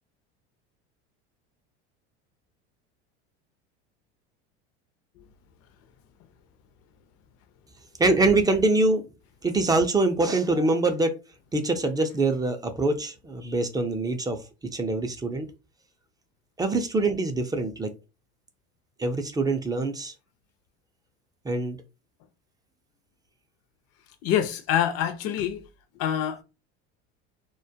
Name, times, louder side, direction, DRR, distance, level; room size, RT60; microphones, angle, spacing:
voice 1, 8.0-9.1 9.4-11.2 11.5-14.4 14.7-15.5 16.6-17.9 19.0-20.1 21.4-21.8, right 2 dB, 15° right, 0.3 m, -24 dB
voice 2, 24.2-25.6 26.0-26.4, left 10 dB, 50° left, 0.5 m, -25 dB
2.2 x 2.1 x 2.7 m
supercardioid pair, 95°, 32 cm